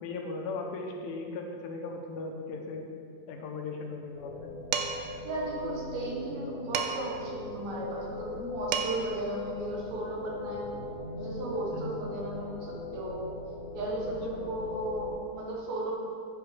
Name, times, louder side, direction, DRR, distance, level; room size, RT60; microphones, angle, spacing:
voice 1, 0.0-2.9 3.3-4.6 11.7-12.0 14.3-14.5, left 3 dB, 85° left, 2 dB, 2.4 m, -38 dB
sound 1, 4.1-15.1, left 2 dB, 55° left, 2.6 m, -40 dB
Dishes pots and pans, 4.7-5.2 6.7-7.2 8.4-8.5 8.7-9.2, right 7 dB, 80° right, 1.9 m, -32 dB
voice 2, 5.2-10.7 11.2-13.3 13.7-15.9, right 1 dB, 60° right, -3 dB, 2.3 m, -35 dB
8.8 x 5.1 x 4.8 m, 2.3 s
omnidirectional pair, 4.1 m